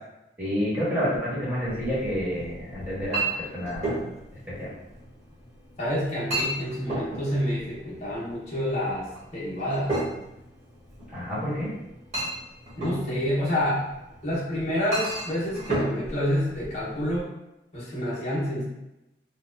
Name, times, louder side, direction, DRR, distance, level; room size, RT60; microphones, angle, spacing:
voice 1, 0.4-3.9 4.6-4.7 11.1-11.7, equal, 10° right, -10 dB, 1.5 m, -29 dB
Chink clink, 1.7-17.2, right 1 dB, 35° right, 1.2 m, -34 dB
voice 2, 5.8-9.9 12.8-13.9 14.2-17.3 17.7-18.6, equal, 40° left, -8 dB, 1.0 m, -28 dB
4.3 x 2.3 x 2.5 m, 0.92 s
head